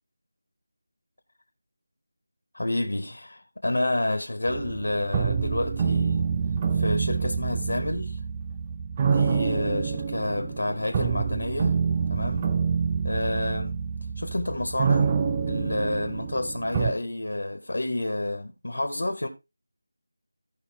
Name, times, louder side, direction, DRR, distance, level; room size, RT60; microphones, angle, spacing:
voice 1, 2.5-6.3 6.7-8.2 9.1-11.8 12.1-12.5 13.0-13.8 14.2-15.1 15.5-19.3, left 1 dB, 80° left, 2.0 m, -29 dB
sound 1, 4.5-16.9, right 6 dB, 15° right, 0.6 m, -27 dB
15.5 x 5.6 x 3.7 m
figure-of-eight pair, 175°, 0 cm